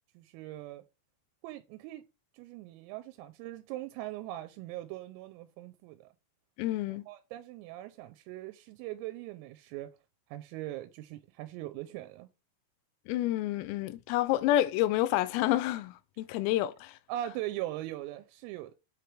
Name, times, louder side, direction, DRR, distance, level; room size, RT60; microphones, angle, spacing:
voice 1, 0.1-0.8 1.4-2.0 2.3-6.1 7.1-9.9 10.3-12.3 17.1-18.7, right 14 dB, 85° right, 3.3 m, -40 dB
voice 2, 6.6-7.1 13.1-17.0, left 14 dB, 85° left, 3.2 m, -29 dB
8.2 x 3.3 x 4.5 m
omnidirectional pair, 5.9 m